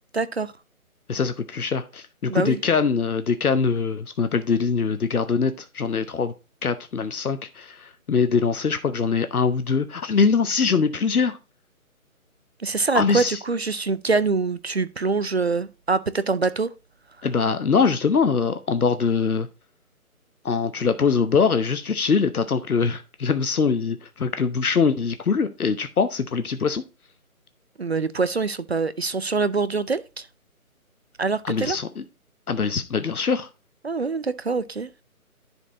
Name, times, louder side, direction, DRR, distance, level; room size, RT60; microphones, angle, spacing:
voice 1, 0.1-0.5 2.3-2.6 12.6-16.7 27.8-30.3 31.2-31.8 33.8-34.9, right 4 dB, 50° right, 0.5 m, -24 dB
voice 2, 1.1-6.3 6.6-11.4 12.9-13.4 17.2-19.5 20.4-26.8 31.4-32.0 32.5-33.5, left 5 dB, 80° left, 0.9 m, -23 dB
11.0 x 4.4 x 3.9 m
figure-of-eight pair, 160°, 44 cm